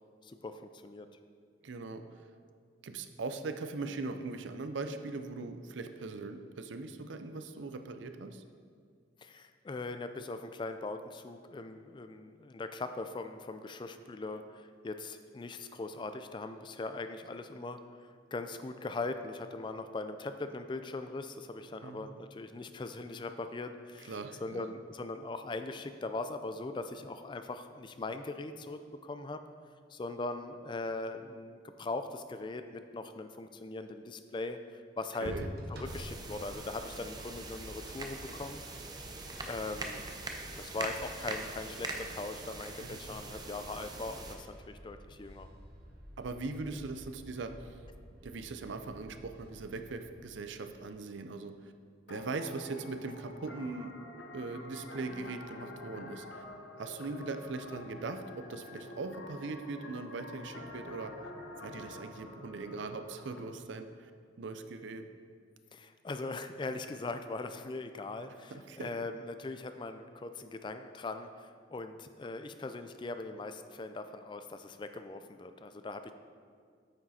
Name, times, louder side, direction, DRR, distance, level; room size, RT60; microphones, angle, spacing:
voice 1, 0.2-1.1 9.2-29.4 29.9-35.3 35.7-38.6 39.5-40.0 40.6-45.5 65.7-76.1, left 3 dB, 25° left, 9 dB, 0.3 m, -40 dB
voice 2, 1.6-2.0 2.8-8.4 21.8-22.2 24.0-24.6 35.2-35.5 42.8-43.0 46.2-47.8 48.2-51.6 52.1-53.9 54.3-56.4 56.8-61.1 61.6-64.1 64.4-65.0 68.5-68.9, right 3 dB, 75° right, 8 dB, 0.5 m, -40 dB
sound 1, 35.2-50.9, equal, 55° right, 1.1 m, -50 dB
sound 2, 35.8-44.4, right 3 dB, 20° right, 0.6 m, -43 dB
sound 3, 52.1-63.4, left 2 dB, 65° left, 0.9 m, -48 dB
8.9 x 6.3 x 4.2 m, 2.1 s
head